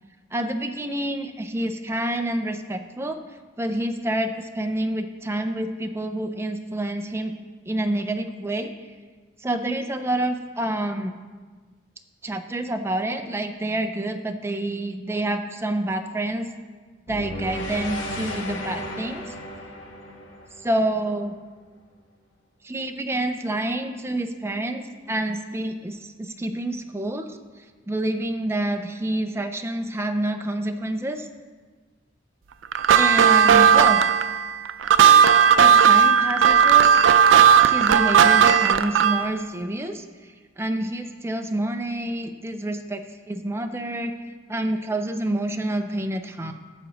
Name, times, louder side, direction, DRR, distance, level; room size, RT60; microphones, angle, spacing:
voice 1, 0.3-3.2 3.6-7.3 7.7-8.7 9.4-11.1 12.2-16.5 17.1-19.2 20.6-21.3 22.6-27.4 27.9-31.3 33.0-34.0 35.6-37.1 37.6-43.0 43.3-44.1 44.5-46.5, right 1 dB, 15° right, 6 dB, 0.5 m, -28 dB
sound 1, 17.1-21.3, left 1 dB, 80° left, 1.5 m, -34 dB
sound 2, 32.7-39.3, right 7 dB, 80° right, 0.4 m, -15 dB
15.0 x 6.1 x 3.0 m, 1.4 s
head